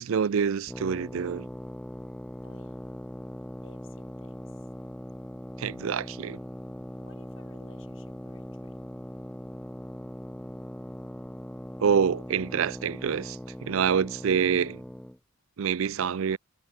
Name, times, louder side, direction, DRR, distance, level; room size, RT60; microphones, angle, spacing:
voice 1, 0.0-1.5 5.6-6.4 11.8-14.8 15.6-16.4, right 7 dB, 65° right, 0.4 m, -26 dB
sound 1, 0.7-15.2, equal, 5° left, 0.6 m, -40 dB
voice 2, 2.4-2.9 3.6-4.7 7.0-8.9, left 3 dB, 60° left, 5.8 m, -58 dB
head